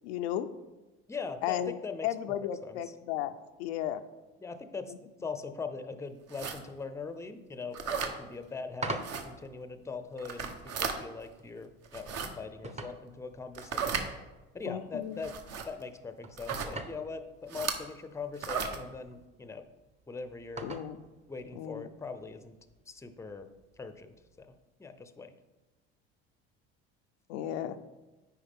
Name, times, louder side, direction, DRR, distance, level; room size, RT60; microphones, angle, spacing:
voice 1, 0.0-0.5 1.4-1.7 2.0-3.3 3.6-4.0 14.7-15.2 20.6-21.0 21.6-21.9 27.3-27.8, left 11 dB, 85° left, 9 dB, 0.5 m, -34 dB
voice 2, 1.1-2.1 2.6-2.9 4.4-4.9 5.2-14.1 14.5-15.3 15.6-19.6 20.1-20.7 21.3-22.5 22.9-23.5 23.8-24.5 24.8-25.3, left 4 dB, 10° left, 9 dB, 0.6 m, -41 dB
sound 1, 6.3-6.6 7.7-8.1 9.0-9.2 10.2-11.0 11.8-12.3 13.5-14.1 15.2-15.7 16.4-16.7 17.5-17.8 18.4-18.8, right 6 dB, 50° right, 1.0 m, -34 dB
sound 2, 8.2-24.6, right 2 dB, 20° right, 0.9 m, -47 dB
9.1 x 4.8 x 3.6 m, 1.1 s
supercardioid pair, 80°, 32 cm